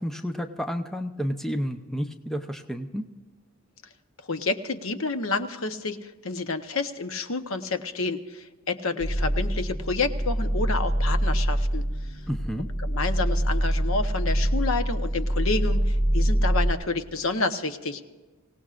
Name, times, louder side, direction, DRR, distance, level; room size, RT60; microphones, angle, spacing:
voice 1, 0.0-3.0 12.3-12.7, equal, ahead, 6 dB, 0.7 m, -31 dB
voice 2, 4.3-11.8 12.8-18.0, left 3 dB, 70° left, 8 dB, 1.0 m, -29 dB
sound 1, 9.0-16.7, equal, 30° left, 1.5 m, -25 dB
25.5 x 17.5 x 2.5 m, 1.2 s
head